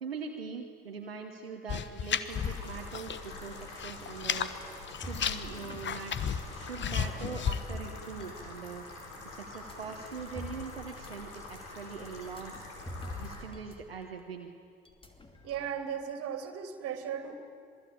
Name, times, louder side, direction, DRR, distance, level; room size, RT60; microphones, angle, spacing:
voice 1, 0.0-4.5 5.0-6.1 6.5-8.8 9.2-12.7 13.2-14.5, right 5 dB, 85° right, 3 dB, 1.2 m, -42 dB
sound 1, 1.7-3.3 3.6-4.5 4.9-7.6, left 8 dB, 40° left, 1.3 m, -33 dB
sound 2, 2.2-13.4, left 3 dB, 55° left, 6.9 m, -46 dB
sound 3, 5.0-8.9 9.5-13.8 14.0-14.2 14.8-15.7, left 2 dB, 20° left, 2.9 m, -46 dB
voice 2, 15.4-17.4, right 8 dB, 55° right, 7 dB, 2.8 m, -36 dB
26.5 x 19.5 x 8.6 m, 2.3 s
figure-of-eight pair, 55°, 29 cm